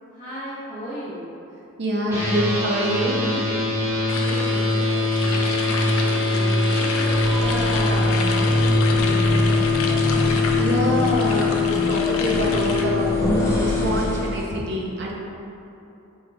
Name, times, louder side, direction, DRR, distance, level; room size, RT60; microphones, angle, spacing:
voice 1, 0.1-1.2 3.9-4.9 5.2-9.8, equal, 30° left, -13 dB, 1.0 m, -35 dB
voice 2, 1.8-3.2 10.6-13.2 13.5-15.2, equal, 55° right, -2 dB, 0.6 m, -25 dB
sound 1, 2.1-14.0, left 3 dB, 10° right, 1.1 m, -22 dB
sound 2, 4.1-12.8, left 3 dB, 85° left, 0.4 m, -30 dB
sound 3, 7.1-14.6, equal, 10° left, 0.6 m, -28 dB
5.4 x 2.3 x 3.5 m, 2.8 s
head